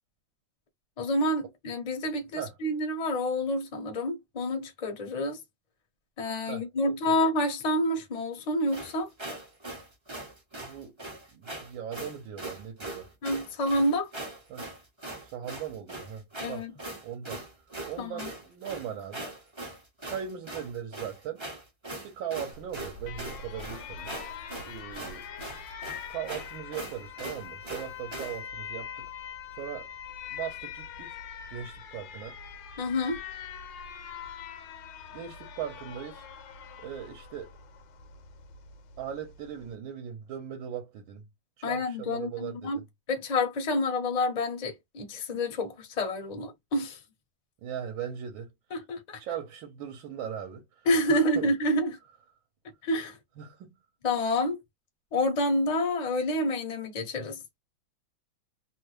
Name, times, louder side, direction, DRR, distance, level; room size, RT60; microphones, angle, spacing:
voice 1, 1.0-5.4 6.2-9.1 13.2-14.1 16.4-16.7 18.0-18.3 32.8-33.2 41.6-42.8 43.1-47.0 48.7-49.2 50.8-52.0 52.8-53.2 54.0-54.6 55.1-57.4, left 1 dB, 40° left, 0.6 m, -28 dB
voice 2, 6.5-7.2 10.6-11.0 11.3-13.1 14.5-14.7 15.2-16.7 17.0-17.4 17.8-19.3 20.0-21.4 22.0-24.1 24.6-25.3 26.1-29.1 29.5-29.9 30.3-31.2 31.5-32.4 35.1-36.3 36.8-37.5 39.0-41.2 41.6-42.8 47.6-48.5 49.2-51.5 53.4-53.8, right 9 dB, 75° right, 1.5 m, -39 dB
sound 1, 8.7-28.4, right 1 dB, 35° right, 0.4 m, -41 dB
Alarm, 22.5-39.8, left 7 dB, 70° left, 1.3 m, -43 dB
3.4 x 2.2 x 3.1 m
omnidirectional pair, 2.2 m